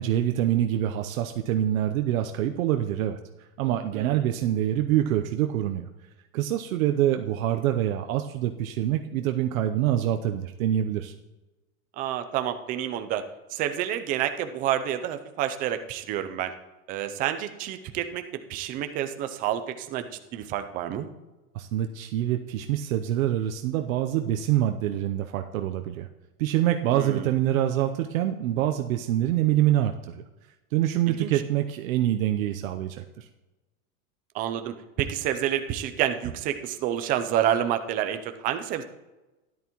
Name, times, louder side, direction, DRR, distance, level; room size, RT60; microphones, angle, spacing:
voice 1, 0.0-3.2 3.6-5.9 6.3-11.1 21.5-26.1 26.4-30.2 30.7-33.2, right 12 dB, 75° right, 6 dB, 0.8 m, -25 dB
voice 2, 12.0-16.5 16.9-20.1 20.3-21.1 26.9-27.3 31.1-31.3 34.3-38.8, right 10 dB, 20° right, 8 dB, 0.4 m, -29 dB
13.0 x 10.5 x 3.0 m, 1.1 s
supercardioid pair, 155°, 41 cm